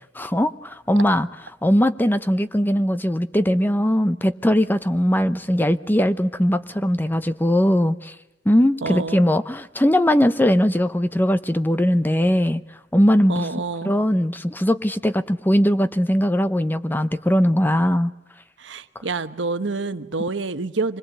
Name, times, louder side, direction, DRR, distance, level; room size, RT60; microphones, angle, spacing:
voice 1, 0.1-1.3 1.6-8.1 8.4-12.6 12.9-13.5 13.8-18.1, equal, 10° left, 12 dB, 0.8 m, -20 dB
voice 2, 8.8-9.2 13.3-13.9 18.6-21.0, right 3 dB, 90° right, 11 dB, 1.1 m, -27 dB
26.0 x 20.5 x 8.2 m, 0.96 s
head